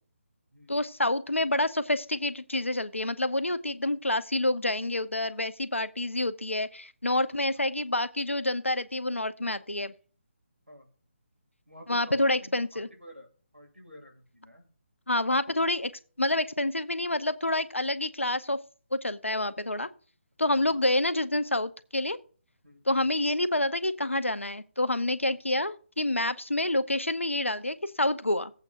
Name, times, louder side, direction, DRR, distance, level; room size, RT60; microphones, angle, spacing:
voice 1, 0.7-9.9 11.9-12.9 15.1-15.9 16.2-18.6 18.9-19.9 20.4-22.2 22.9-28.5, left 1 dB, 85° left, 13 dB, 0.8 m, -28 dB
voice 2, 11.7-13.3 13.5-14.6 20.5-20.7 22.6-23.1, left 1 dB, 90° right, 4 dB, 2.5 m, -50 dB
16.5 x 8.1 x 2.5 m, 0.39 s
figure-of-eight pair, 150°, 7 cm